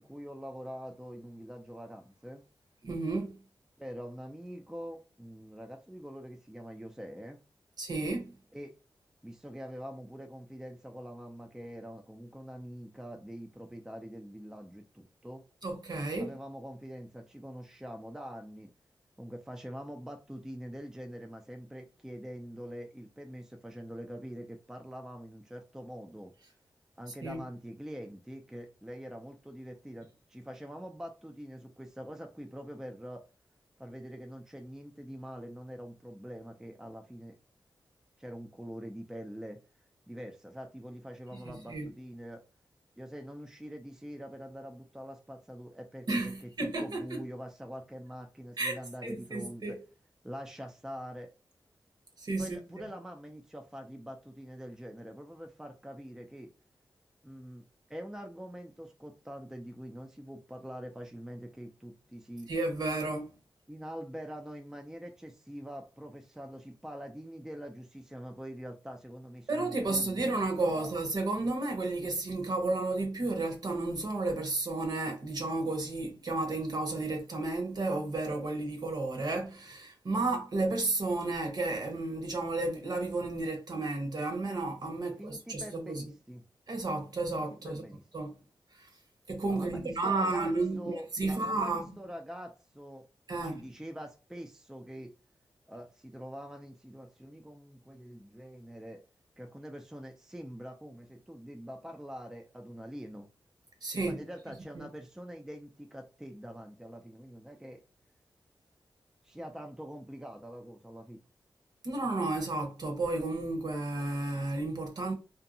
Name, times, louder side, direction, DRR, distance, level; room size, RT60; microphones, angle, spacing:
voice 1, 0.0-2.4 3.8-7.4 8.5-8.7 9.2-15.4 16.2-18.7 19.2-26.3 27.0-33.2 33.8-37.4 38.2-39.6 40.1-42.4 43.0-49.8 50.2-51.3 52.4-56.5 57.2-57.6 57.9-62.5 63.7-70.2 70.7-70.9 85.0-86.4 87.4-88.0 89.5-93.0 93.4-95.1 95.7-99.0 99.4-103.3 104.1-107.8 109.2-111.2, equal, 5° right, 0.4 m, -44 dB
voice 2, 2.8-3.4 7.8-8.3 15.6-16.3 27.2-27.4 41.3-41.9 46.1-47.2 48.6-48.8 49.0-49.7 52.2-52.9 62.5-63.3 69.5-86.1 86.7-87.8 88.1-88.3 88.8-88.9 89.3-92.0 93.3-93.7 103.8-104.2 104.7-104.8 111.8-115.1, right 2 dB, 55° right, 1.0 m, -32 dB
2.6 x 2.1 x 2.6 m
cardioid pair, 70°, 8 cm